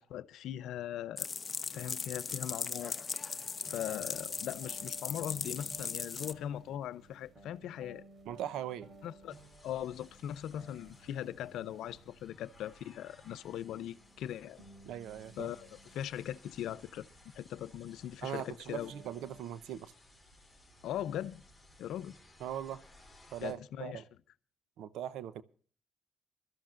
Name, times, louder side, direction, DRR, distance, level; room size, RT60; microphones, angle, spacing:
voice 1, 0.1-1.3 1.7-2.9 3.7-8.0 9.0-9.4 9.6-14.6 15.4-17.1 17.3-18.9 20.8-21.4 21.8-22.1 23.4-24.0, left 11 dB, 80° left, 0.6 m, -40 dB
sound 1, 1.2-6.3, left 5 dB, 35° left, 0.8 m, -38 dB
sound 2, 3.6-19.4, right 3 dB, 40° right, 3.4 m, -57 dB
voice 2, 8.3-8.9 14.8-15.5 18.2-19.9 22.4-22.8 23.3-24.0 24.8-25.4, right 10 dB, 85° right, 0.8 m, -40 dB
sound 3, 9.3-23.5, left 1 dB, ahead, 5.1 m, -60 dB
24.5 x 13.5 x 2.5 m
cardioid pair, 90°, 0 cm